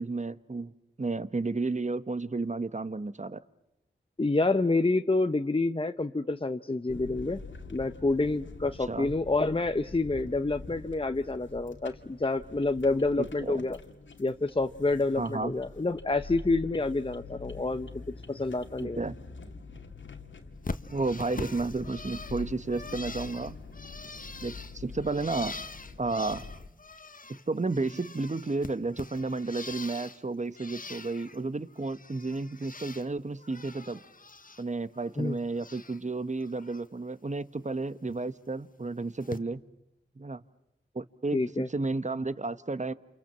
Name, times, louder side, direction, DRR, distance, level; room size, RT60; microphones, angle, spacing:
voice 1, 0.0-3.4 8.9-9.1 13.2-13.6 15.2-15.5 18.8-19.2 20.9-23.6 24.4-25.5 26.0-26.5 27.3-34.1 34.6-39.6 40.2-40.4 40.9-42.9, right 3 dB, 40° right, 14 dB, 1.3 m, -32 dB
voice 2, 4.2-7.4 7.7-13.8 14.2-17.9 18.3-19.0 35.2-35.4 41.3-41.7, left 2 dB, 30° left, 9 dB, 1.0 m, -28 dB
sound 1, 6.9-26.7, left 4 dB, 85° left, 2.2 m, -45 dB
Bird, 20.6-27.4 27.7-30.2 30.5-31.4 31.7-33.1 33.4-34.6 34.9-36.0 36.4-36.8 38.1-38.2 39.2-39.4, left 3 dB, 45° left, 1.5 m, -43 dB
29.0 x 27.5 x 7.6 m, 0.87 s
cardioid pair, 45°, 19 cm